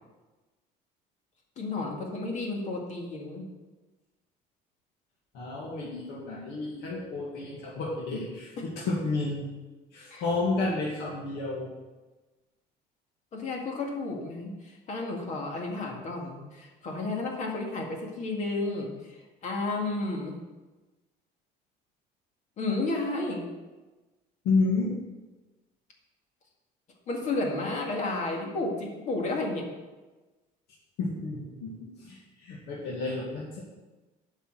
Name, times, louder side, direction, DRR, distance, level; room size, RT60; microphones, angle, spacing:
voice 1, 1.6-3.4 8.6-8.7 10.1-10.2 13.3-20.4 22.6-23.5 27.1-29.7, left 2 dB, 45° left, 1 dB, 2.1 m, -32 dB
voice 2, 5.3-9.5 9.9-11.7 24.4-24.9 31.0-33.6, left 3 dB, 85° left, -4 dB, 2.2 m, -31 dB
8.8 x 5.6 x 7.9 m, 1.2 s
cardioid pair, 155°, 17 cm